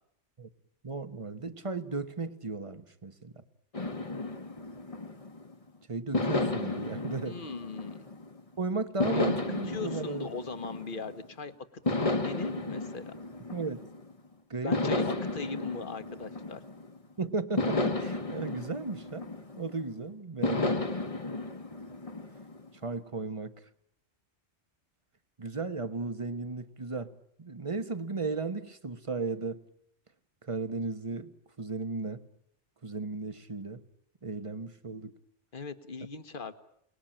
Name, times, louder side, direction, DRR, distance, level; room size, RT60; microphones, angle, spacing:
voice 1, 0.8-3.4 5.9-7.4 8.6-10.3 13.5-13.8 14.5-14.9 17.2-19.3 19.6-20.8 22.8-23.5 25.4-29.6 30.4-31.3 31.6-32.3 32.8-33.8 34.2-35.1, right 3 dB, 30° right, 11 dB, 1.2 m, -35 dB
sound 1, 3.7-5.5 6.1-8.4 9.0-11.3 11.9-14.1 14.7-17.0 17.6-19.8 20.4-22.7, left 2 dB, 30° left, 1.3 m, -33 dB
voice 2, 7.1-8.1 9.1-9.3 9.6-11.5 12.0-13.1 14.6-16.6 35.5-36.5, left 4 dB, 50° left, 10 dB, 1.5 m, -39 dB
28.5 x 19.5 x 8.9 m, 0.77 s
omnidirectional pair, 1.2 m